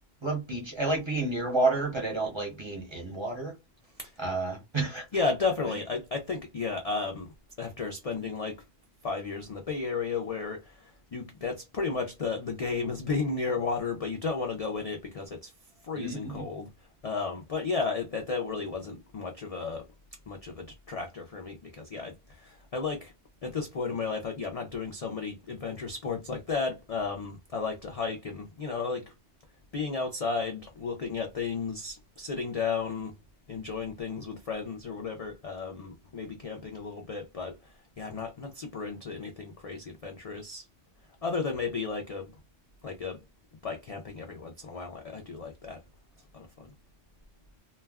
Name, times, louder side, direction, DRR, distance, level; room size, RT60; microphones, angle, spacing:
voice 1, 0.2-3.5 4.2-5.1 16.0-16.4, right 2 dB, 30° right, 0.6 m, -30 dB
voice 2, 5.1-8.6 9.0-15.5 15.8-19.9 20.3-23.1 23.4-29.1 29.7-33.1 33.5-40.7 41.2-42.3 42.8-43.2 43.6-45.8 46.3-46.7, left 4 dB, 60° left, 0.4 m, -33 dB
2.3 x 2.1 x 3.4 m
omnidirectional pair, 1.2 m